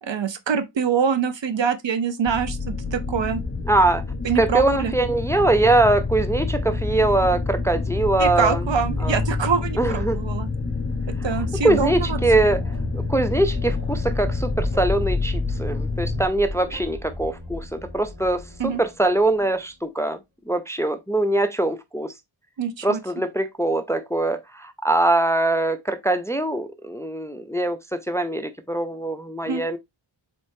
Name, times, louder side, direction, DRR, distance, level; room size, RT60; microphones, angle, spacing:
voice 1, 0.0-3.4 4.2-4.9 8.2-10.5 11.1-12.2 18.6-18.8 22.6-23.0 29.5-29.6, right 6 dB, 65° right, 0.6 m, -24 dB
sound 1, 2.3-16.2, left 3 dB, 30° left, 0.9 m, -28 dB
voice 2, 3.7-4.0 4.4-8.6 9.0-9.2 9.8-10.2 11.6-12.6 12.9-20.2 20.5-22.1 22.8-29.8, right 2 dB, 5° left, 0.4 m, -22 dB
sound 2, 11.1-19.7, left 2 dB, 45° right, 2.2 m, -32 dB
4.1 x 3.5 x 2.6 m
wide cardioid pair, 50°, 49 cm